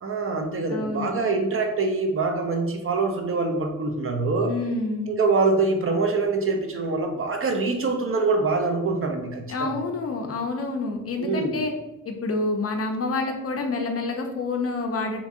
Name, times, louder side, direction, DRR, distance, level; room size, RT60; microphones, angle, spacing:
voice 1, 0.0-4.5 5.1-9.7 11.2-11.6, right 3 dB, 40° right, 4 dB, 0.4 m, -24 dB
voice 2, 0.7-1.2 4.4-5.2 9.5-11.7 12.1-15.2, left 3 dB, 45° left, 4 dB, 0.5 m, -28 dB
2.9 x 2.5 x 3.5 m, 0.97 s
wide cardioid pair, 145°, 34 cm